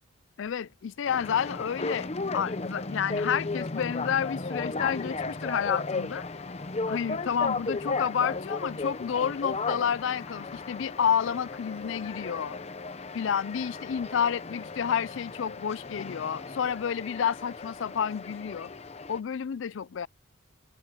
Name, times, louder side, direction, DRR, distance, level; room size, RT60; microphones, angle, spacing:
voice 1, 0.4-6.2 6.9-12.6 13.1-18.7 19.1-20.1, left 7 dB, 65° left, 0.4 m, -30 dB
sound 1, 1.1-19.2, left 3 dB, 30° left, 0.7 m, -35 dB
head